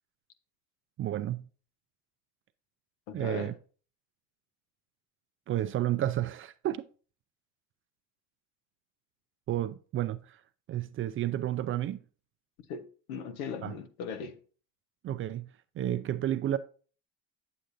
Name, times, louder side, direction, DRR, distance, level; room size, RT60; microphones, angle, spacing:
voice 1, 1.0-1.5 3.1-3.5 5.5-6.8 9.5-10.4 10.7-12.0 13.6-13.7 15.0-15.5 15.8-16.6, right 12 dB, 30° right, 0.4 m, -31 dB
voice 2, 3.1-3.5 12.7-14.4, left 6 dB, 80° left, 1.1 m, -39 dB
8.4 x 7.7 x 2.6 m
supercardioid pair, 105°, 42 cm